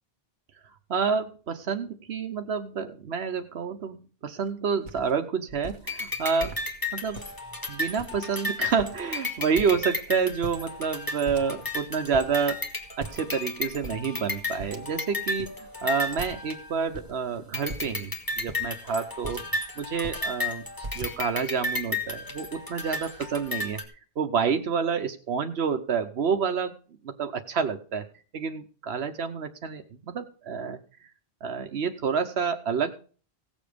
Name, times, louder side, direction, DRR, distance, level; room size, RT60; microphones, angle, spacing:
voice 1, 0.9-6.6 6.9-7.2 7.7-12.6 13.0-20.6 20.9-23.8 24.2-26.7 27.0-28.1 28.3-30.8 31.4-32.9, right 6 dB, 90° right, 7 dB, 1.2 m, -28 dB
sound 1, 4.4-4.5 4.8-5.1 5.5-5.8 6.4-6.6 7.1-7.5 8.0-8.4 8.7-9.2 9.6-10.0 10.3-11.0 11.2-11.8 12.1-12.3 13.0-13.4 13.7-14.0 14.6-15.1 15.4-15.5 16.2-16.5 16.9-17.1 17.7-18.0 18.4-19.6 19.9-20.3 20.8-21.4, right 2 dB, 50° right, 1.5 m, -41 dB
sound 2, 5.9-17.1 17.5-23.8, left 2 dB, 20° left, 2.1 m, -34 dB
17.5 x 7.3 x 5.1 m, 0.39 s
omnidirectional pair, 1.0 m